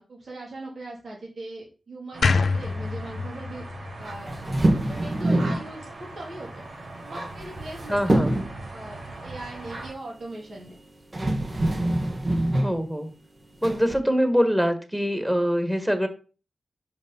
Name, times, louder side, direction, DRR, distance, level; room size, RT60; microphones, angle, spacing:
voice 1, 0.0-3.6 4.0-4.3 4.9-6.5 7.0-8.2 8.7-10.8, right 2 dB, 70° right, -4 dB, 3.0 m, -40 dB
sound 1, 2.1-9.9, right 2 dB, 85° right, 2.4 m, -40 dB
sound 2, 2.2-5.4, left 4 dB, 75° left, 0.4 m, -27 dB
sound 3, 4.3-5.7 7.2-7.8 8.1-8.6 10.6-10.7 11.1-12.8 13.6-14.0, right 1 dB, 45° right, 1.6 m, -24 dB
voice 2, 7.9-8.4 12.6-13.1 13.6-16.1, equal, 10° right, 7 dB, 1.8 m, -24 dB
5.3 x 5.2 x 5.4 m, 0.35 s
cardioid pair, 45°, 0 cm